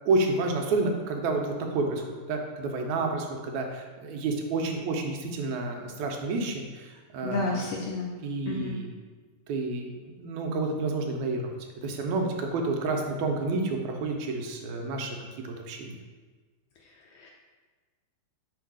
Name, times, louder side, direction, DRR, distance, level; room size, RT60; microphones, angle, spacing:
voice 1, 0.1-7.7 8.2-8.9 9.5-9.9 10.2-11.5 11.8-15.2 15.4-16.0, right 3 dB, 85° right, 2 dB, 2.1 m, -29 dB
voice 2, 7.2-8.1 8.5-8.8 17.2-17.3, left 3 dB, 80° left, -1 dB, 1.4 m, -30 dB
4.7 x 4.4 x 4.7 m, 1.4 s
omnidirectional pair, 3.3 m